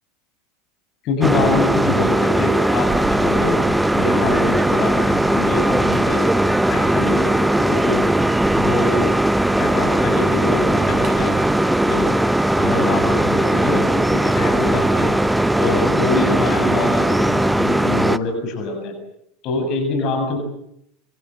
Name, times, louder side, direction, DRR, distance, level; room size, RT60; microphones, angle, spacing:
voice 1, 1.0-2.9 3.2-3.6 3.9-6.2 6.7-8.0 8.5-9.1 9.6-11.4 11.8-12.1 12.6-15.2 15.6-18.9 19.4-20.4, left 3 dB, 45° left, 4 dB, 7.4 m, -25 dB
sound 1, 1.2-18.2, right 1 dB, 5° right, 1.0 m, -18 dB
sound 2, 2.8-16.8, right 4 dB, 30° right, 7.2 m, -39 dB
26.5 x 24.5 x 7.8 m, 0.77 s
figure-of-eight pair, 80°, 0 cm